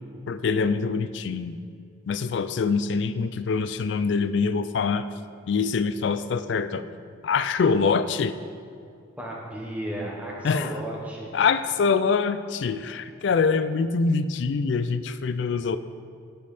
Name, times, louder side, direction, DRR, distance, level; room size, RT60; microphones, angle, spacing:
voice 1, 0.3-1.6 2.1-5.0 5.5-6.8 7.2-8.3 10.4-10.7 11.3-15.8, left 5 dB, 60° left, 12 dB, 0.3 m, -24 dB
voice 2, 9.2-11.3, right 1 dB, 5° right, -3 dB, 1.2 m, -34 dB
11.5 x 5.3 x 4.2 m, 2.4 s
head